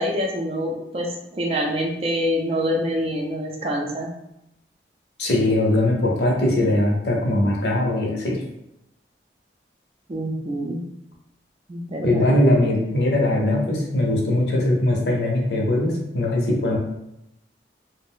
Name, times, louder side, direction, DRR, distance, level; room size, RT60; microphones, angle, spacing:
voice 1, 0.0-4.1 10.1-10.8 11.7-12.3, equal, 35° right, 0 dB, 0.4 m, -26 dB
voice 2, 5.2-8.4 12.0-16.8, left 1 dB, 65° left, -2 dB, 0.7 m, -20 dB
2.5 x 2.0 x 3.6 m, 0.85 s
head